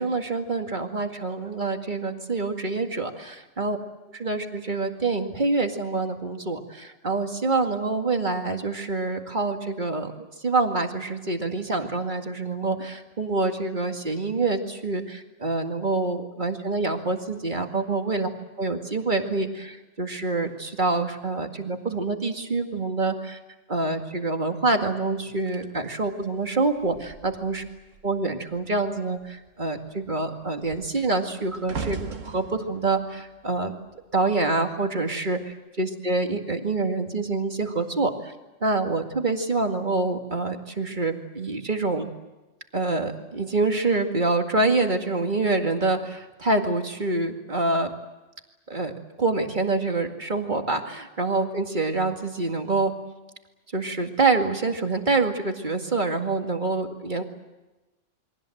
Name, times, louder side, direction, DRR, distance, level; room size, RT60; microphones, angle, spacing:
voice 1, 0.0-3.8 4.1-10.1 10.4-18.3 18.6-23.4 23.7-27.6 28.0-33.8 34.1-38.3 38.6-42.1 42.7-47.9 48.7-48.9 49.2-52.9 53.7-57.2, right 3 dB, 40° right, 4 dB, 2.3 m, -26 dB
sound 1, 25.5-28.2 28.5-28.9 29.2-34.5 35.2-35.5, right 5 dB, 85° right, 1.8 m, -40 dB
29.0 x 23.5 x 7.9 m, 1.1 s
omnidirectional pair, 1.3 m